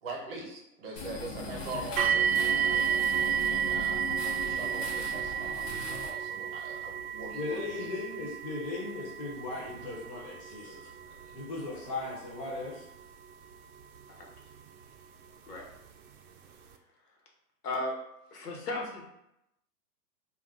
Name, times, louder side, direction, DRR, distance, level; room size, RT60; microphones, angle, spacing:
voice 1, 0.0-7.9, right 2 dB, 40° right, -2 dB, 0.7 m, -42 dB
sound 1, 1.0-6.1, left 3 dB, 55° left, 0.7 m, -39 dB
sound 2, 2.0-14.8 15.7-15.8 16.4-16.5, right 9 dB, 70° right, 0.5 m, -32 dB
voice 2, 7.3-10.7 11.3-12.8, left 3 dB, 25° left, -6 dB, 0.5 m, -37 dB
voice 3, 10.6-11.2 14.1-14.3 15.5-15.7 17.6-18.0 18.3-19.1, left 2 dB, 80° left, 0 dB, 1.0 m, -36 dB
2.4 x 2.1 x 3.4 m, 0.85 s
hypercardioid pair, 155°, 46 cm